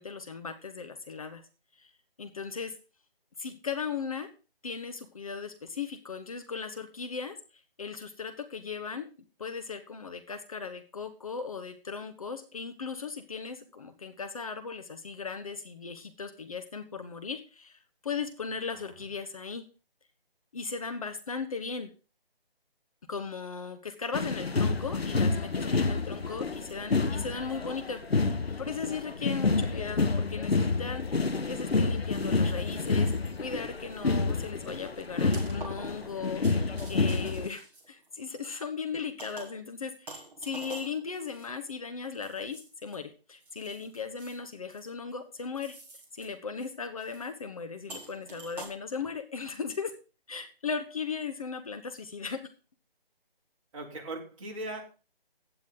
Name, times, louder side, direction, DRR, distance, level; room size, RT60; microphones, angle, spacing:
voice 1, 0.0-1.4 1.8-1.9 2.2-2.7 3.4-4.3 4.6-7.4 7.8-9.1 9.4-19.6 20.5-21.9 23.1-33.1 33.4-45.7 46.1-49.9 50.3-52.4, left 5 dB, 35° left, 9 dB, 1.1 m, -37 dB
voice 2, 18.7-19.1 26.5-26.6 53.7-54.8, right 1 dB, 35° right, -1 dB, 3.5 m, -40 dB
sound 1, 24.1-37.5, left 3 dB, 85° left, 1.2 m, -29 dB
sound 2, 32.1-33.4 33.8-34.0 34.4-38.5 39.2-39.7 40.1-43.0 43.4-44.4 44.7-45.1 45.5-46.3 46.6-46.7 47.0-47.3 47.9-48.7, right 2 dB, 5° right, 1.5 m, -48 dB
15.5 x 9.5 x 3.9 m, 0.34 s
figure-of-eight pair, 155°, 30 cm